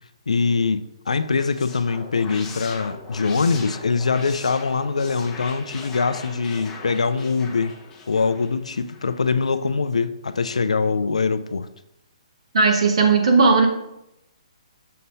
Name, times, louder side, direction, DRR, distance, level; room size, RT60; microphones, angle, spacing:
voice 1, 0.3-7.7 8.1-11.7, left 4 dB, 80° left, 0.4 m, -23 dB
sound 1, 1.1-9.2, left 4 dB, 15° left, 1.1 m, -40 dB
voice 2, 12.5-13.7, right 4 dB, 65° right, 1.3 m, -16 dB
6.6 x 5.4 x 2.7 m
hypercardioid pair, 140°, 3 cm